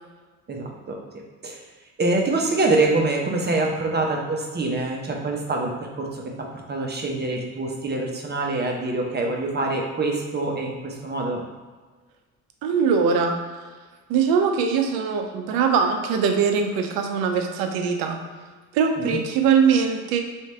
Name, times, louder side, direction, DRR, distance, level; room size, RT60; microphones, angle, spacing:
voice 1, 0.5-1.0 1.4-1.6 2.0-11.4 19.0-19.2, right 2 dB, 25° right, 0 dB, 0.9 m, -25 dB
voice 2, 12.6-13.4 14.1-18.2 18.7-20.2, right 6 dB, 60° right, 4 dB, 0.7 m, -21 dB
3.2 x 3.2 x 4.3 m, 1.4 s
figure-of-eight pair, 50°, 42 cm